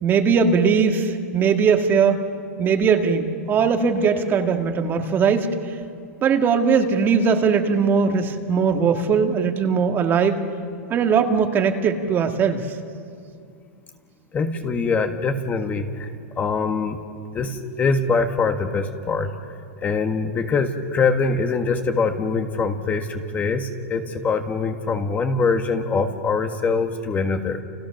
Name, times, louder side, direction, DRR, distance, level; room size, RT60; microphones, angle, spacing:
voice 1, 0.0-2.2 2.6-5.5 6.2-10.4 10.9-12.6, right 6 dB, 25° right, 5 dB, 2.0 m, -20 dB
voice 2, 14.3-17.0 17.3-19.3 19.8-27.6, left 4 dB, 20° left, 6 dB, 1.7 m, -23 dB
30.0 x 29.5 x 6.6 m, 2.4 s
hypercardioid pair, 140°, 8 cm